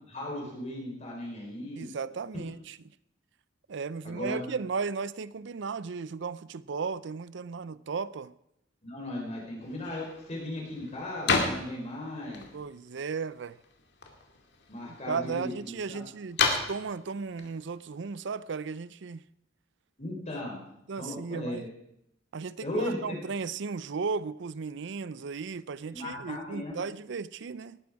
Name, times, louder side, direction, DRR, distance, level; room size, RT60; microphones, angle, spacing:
voice 1, 0.1-1.9 4.0-4.5 8.8-12.4 14.7-16.0 20.0-20.6 21.0-21.7 22.6-23.2 25.9-26.8, left 1 dB, 35° left, 4.1 m, -36 dB
voice 2, 1.8-2.8 3.7-8.3 12.5-13.6 14.9-16.4 16.7-19.2 20.9-21.7 22.3-27.8, right 5 dB, 65° right, 0.5 m, -35 dB
sound 1, 9.6-18.8, left 4 dB, 65° left, 2.3 m, -35 dB
19.0 x 11.5 x 4.7 m
head